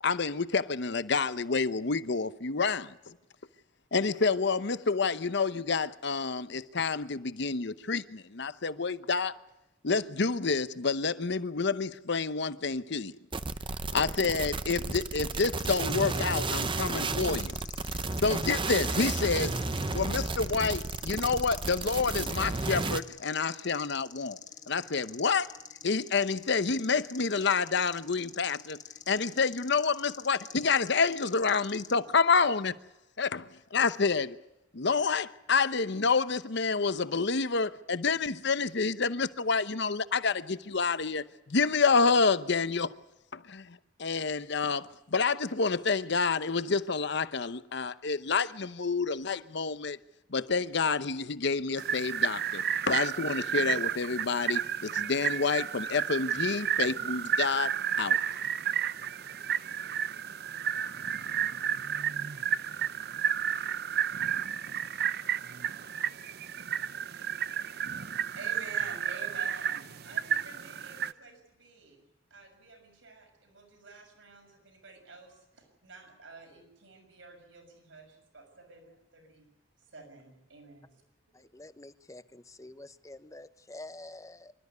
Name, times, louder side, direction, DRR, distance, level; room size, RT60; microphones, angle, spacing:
voice 1, 0.0-2.9 3.9-9.3 9.8-13.2 13.9-17.5 18.2-19.6 19.9-24.4 24.7-25.5 25.8-28.8 29.1-32.8 33.2-34.4 34.7-42.9 43.3-50.0 50.3-58.2, left 4 dB, 65° left, 0.9 m, -28 dB
sound 1, 13.3-23.0, right 3 dB, 25° right, 0.8 m, -32 dB
sound 2, 15.6-31.9, left 8 dB, 40° left, 2.0 m, -48 dB
sound 3, 51.8-71.1, right 8 dB, 55° right, 0.7 m, -32 dB
voice 2, 68.3-72.0 72.3-79.5 79.8-81.5, right 3 dB, 75° right, 6.3 m, -50 dB
voice 3, 81.3-84.5, left 2 dB, 15° left, 0.8 m, -47 dB
26.0 x 13.5 x 9.5 m
head